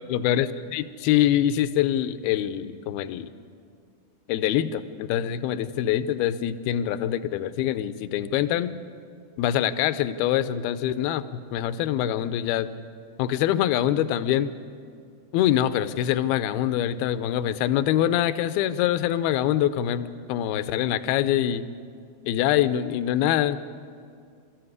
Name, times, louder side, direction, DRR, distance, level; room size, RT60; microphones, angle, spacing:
voice 1, 0.0-3.3 4.3-8.7 9.4-11.2 11.5-12.7 13.2-14.5 15.3-21.7 22.3-23.6, left 11 dB, 80° left, 12 dB, 2.3 m, -24 dB
25.0 x 14.0 x 9.6 m, 2.2 s
omnidirectional pair, 5.0 m